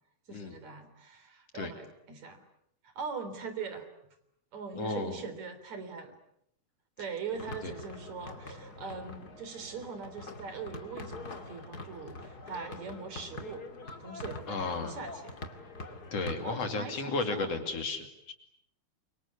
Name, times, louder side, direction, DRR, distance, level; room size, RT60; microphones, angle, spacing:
voice 1, 0.3-2.4 2.8-3.9 4.5-6.1 7.0-13.7 14.0-15.4 16.4-17.6, right 5 dB, 60° right, 9 dB, 4.8 m, -41 dB
voice 2, 4.8-5.2 7.6-7.7 14.5-15.0 16.1-18.3, left 3 dB, 55° left, 6 dB, 3.6 m, -34 dB
sound 1, 7.3-16.6, left 2 dB, 35° left, 2.5 m, -44 dB
28.5 x 24.5 x 8.4 m, 0.74 s
omnidirectional pair, 3.6 m